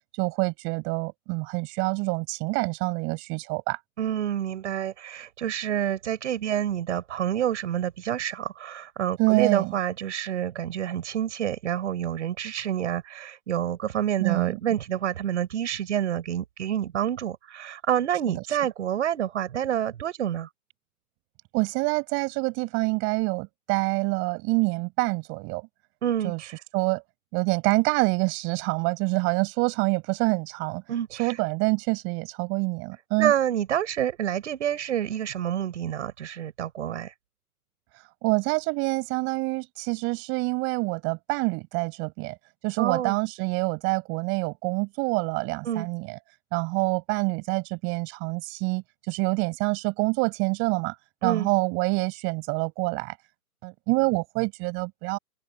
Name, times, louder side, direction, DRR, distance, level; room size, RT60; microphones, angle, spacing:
voice 1, 0.2-3.8 9.2-9.7 14.2-14.6 21.5-25.7 26.2-26.4 26.7-27.0 27.3-30.8 31.2-33.3 38.2-42.4 42.6-46.2 46.5-50.9 51.2-53.2 53.6-55.2, right 30 dB, 25° right, 7.4 m, -26 dB
voice 2, 4.0-20.5 26.0-26.6 30.9-31.4 33.2-37.1 42.8-43.2 45.6-45.9 51.2-51.5, right 10 dB, 50° right, 6.7 m, -28 dB
open air
figure-of-eight pair, 135°, 46 cm